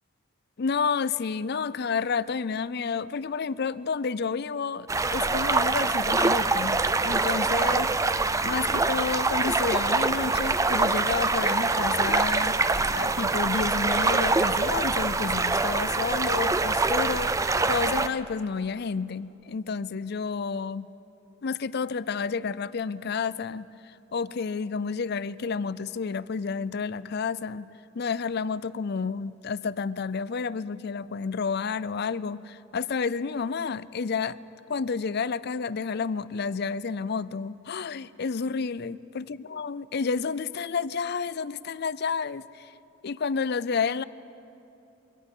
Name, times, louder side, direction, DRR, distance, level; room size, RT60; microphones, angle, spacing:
voice 1, 0.6-7.9 8.4-12.6 12.9-20.9 21.4-23.7 24.1-27.7 27.9-34.4 34.7-42.7 43.0-44.0, left 5 dB, 55° left, 17 dB, 0.5 m, -30 dB
sound 1, 4.9-18.1, right 3 dB, 15° right, 0.5 m, -24 dB
27.0 x 23.5 x 5.5 m, 2.8 s
head